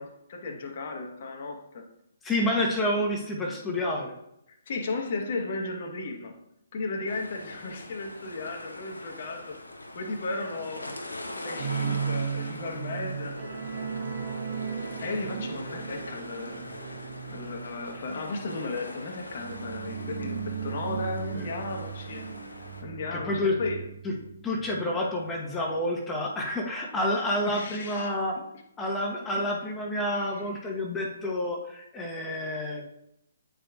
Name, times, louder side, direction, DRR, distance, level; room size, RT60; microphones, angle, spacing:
voice 1, 0.0-1.9 4.5-6.4 6.7-9.6 9.9-10.9 11.4-13.6 15.0-16.8 17.3-22.2 22.8-23.9 27.5-28.1 28.3-28.4 29.3-29.4 30.1-30.5, left 3 dB, 50° left, 3 dB, 1.1 m, -35 dB
voice 2, 2.2-4.1 21.3-21.5 23.1-23.6 24.4-28.3 28.8-33.0, left 1 dB, 10° left, -1 dB, 1.0 m, -29 dB
sound 1, 7.0-22.8, left 1 dB, 80° left, 0.9 m, -42 dB
sound 2, 11.6-24.8 25.1-25.3 25.7-25.8, right 7 dB, 40° right, 0.9 m, -36 dB
8.8 x 4.9 x 2.4 m, 0.79 s
figure-of-eight pair, 130°, 0 cm